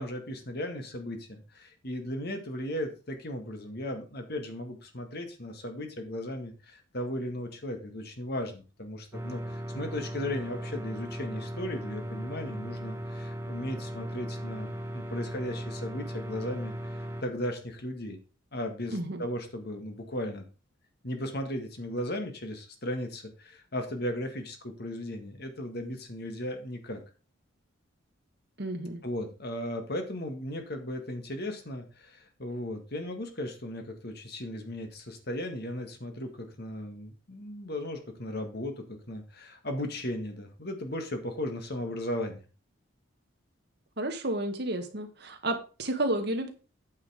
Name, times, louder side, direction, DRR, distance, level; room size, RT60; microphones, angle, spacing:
voice 1, 0.0-16.7 17.0-18.2 18.5-20.4 21.0-27.0 29.0-42.4, left 1 dB, 50° left, 5 dB, 1.8 m, -36 dB
sound 1, 9.1-17.2, equal, 10° right, 1.2 m, -37 dB
voice 2, 18.9-19.2 28.6-29.0 44.0-46.5, right 1 dB, 55° right, 5 dB, 1.7 m, -31 dB
9.0 x 5.6 x 5.0 m, 0.34 s
head